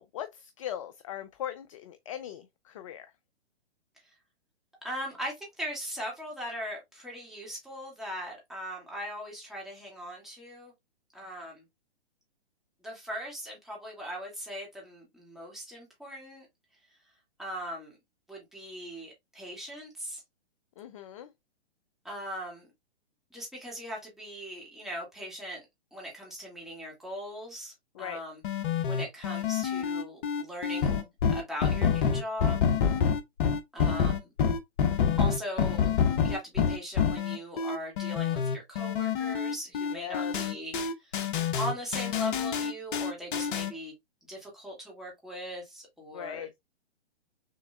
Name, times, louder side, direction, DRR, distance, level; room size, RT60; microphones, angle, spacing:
voice 1, 0.0-3.1 20.8-21.3 28.0-28.2 39.9-40.3 46.1-46.5, left 11 dB, 30° left, 0.4 m, -39 dB
voice 2, 4.8-10.7 11.1-11.6 12.8-16.5 17.4-18.0 18.3-20.2 22.0-22.7 23.3-25.6 25.9-28.4 28.8-32.6 33.7-34.3 35.2-35.9 36.2-40.8 41.0-41.1 41.6-43.9 44.3-46.5, equal, ahead, 2.2 m, -39 dB
sound 1, 28.4-43.7, left 7 dB, 50° left, 1.0 m, -27 dB
6.5 x 3.5 x 2.3 m
hypercardioid pair, 130°, 33 cm